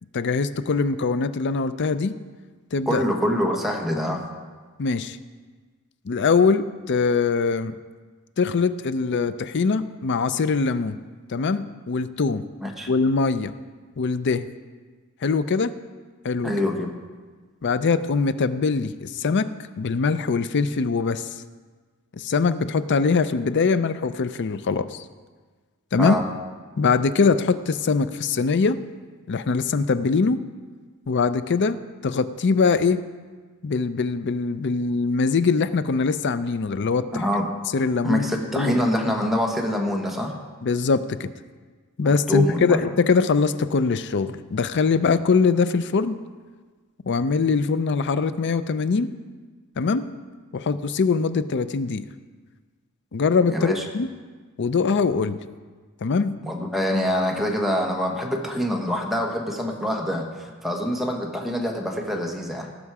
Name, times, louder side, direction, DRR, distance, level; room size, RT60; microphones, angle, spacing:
voice 1, 0.1-2.2 2.7-3.0 4.8-5.2 6.0-7.8 8.4-11.0 11.3-12.5 12.9-13.5 14.0-14.5 15.2-15.7 16.2-16.5 17.6-19.5 19.8-21.3 22.1-25.0 25.9-26.2 26.8-28.8 29.3-30.4 31.1-33.0 33.6-37.2 37.7-38.3 38.5-38.8 40.6-41.3 42.0-46.2 47.1-49.1 49.8-50.0 50.5-52.1 53.1-54.1 54.6-55.4 56.0-56.4, left 4 dB, 55° left, 13 dB, 0.5 m, -22 dB
voice 2, 2.9-4.2 12.6-12.9 16.4-16.9 26.0-26.2 37.1-37.4 38.0-40.3 42.3-42.9 53.5-53.8 56.4-62.7, equal, ahead, 0 dB, 1.3 m, -25 dB
18.0 x 6.2 x 4.8 m, 1.5 s
head